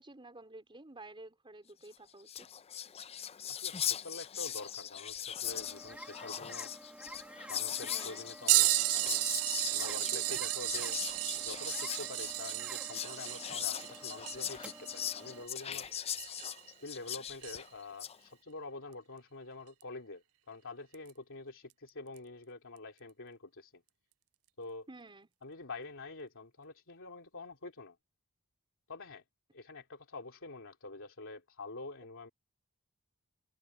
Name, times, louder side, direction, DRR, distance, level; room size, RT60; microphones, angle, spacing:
voice 1, 0.0-2.5 7.8-8.2 9.8-10.4 24.9-25.3, right 2 dB, 25° right, 3.9 m, -51 dB
Whispering, 1.9-2.0 2.2-18.2, left 10 dB, 30° left, 0.5 m, -40 dB
voice 2, 3.5-6.7 7.5-9.2 9.7-11.0 11.4-15.9 16.6-23.8 24.6-24.9 25.4-28.0 28.9-29.2 29.5-32.3, left 3 dB, 65° left, 3.2 m, -47 dB
sound 1, 5.4-15.5, right 1 dB, 5° right, 2.0 m, -51 dB
sound 2, 8.5-16.7 17.4-17.5 19.8-19.9 20.9-21.1 22.2-22.3, right 21 dB, 70° right, 0.3 m, -33 dB
head